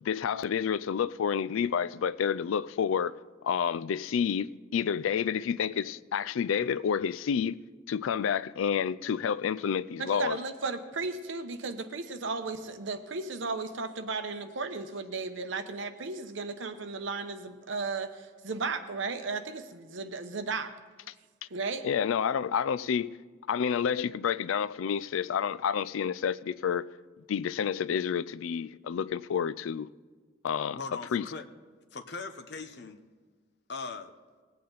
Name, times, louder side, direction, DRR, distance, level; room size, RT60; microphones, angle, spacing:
voice 1, 0.0-3.2 3.4-7.6 7.9-10.4 21.8-23.2 23.5-26.9 27.3-29.9 30.4-30.8 31.1-31.2, left 7 dB, 90° left, 0.4 m, -29 dB
voice 2, 10.0-20.7 21.5-21.9, right 4 dB, 75° right, 0.9 m, -35 dB
voice 3, 30.7-31.5 31.9-33.0 33.7-34.1, left 4 dB, 55° left, 0.8 m, -39 dB
19.0 x 8.5 x 4.0 m
head